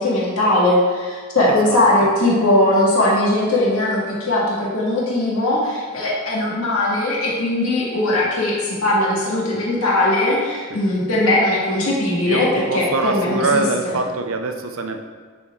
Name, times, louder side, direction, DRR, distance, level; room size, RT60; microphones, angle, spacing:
voice 1, 0.0-13.9, left 1 dB, 70° left, -5 dB, 2.1 m, -19 dB
voice 2, 1.5-2.1 10.7-10.8 12.3-15.0, right 3 dB, 65° right, 5 dB, 0.6 m, -24 dB
10.5 x 4.4 x 3.7 m, 1.5 s
head